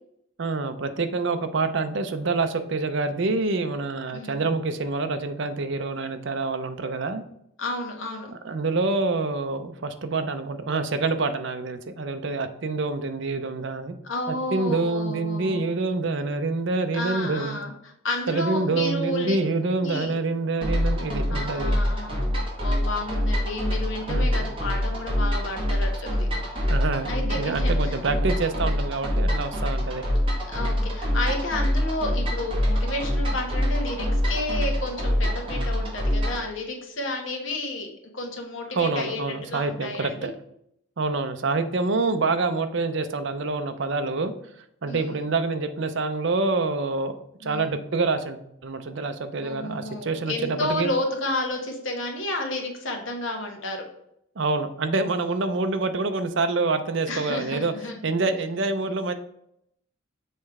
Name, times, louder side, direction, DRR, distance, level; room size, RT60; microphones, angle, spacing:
voice 1, 0.4-7.2 8.3-13.9 14.3-17.6 18.3-21.7 24.1-24.3 26.7-30.0 38.7-40.3 41.0-44.3 44.8-47.2 47.4-50.9 54.4-57.7 58.0-59.1, right 3 dB, 60° right, 8 dB, 0.6 m, -26 dB
voice 2, 4.1-4.4 7.6-8.3 14.0-15.7 16.9-17.7 18.0-19.4 19.8-20.1 21.3-22.3 22.6-26.5 27.1-28.0 30.5-39.2 39.5-40.3 44.9-45.1 47.4-47.7 49.4-53.8 57.1-58.0, left 2 dB, 65° left, 2 dB, 1.4 m, -31 dB
sound 1, 20.6-36.5, equal, 25° right, 1.6 m, -25 dB
6.7 x 3.2 x 4.7 m, 0.74 s
head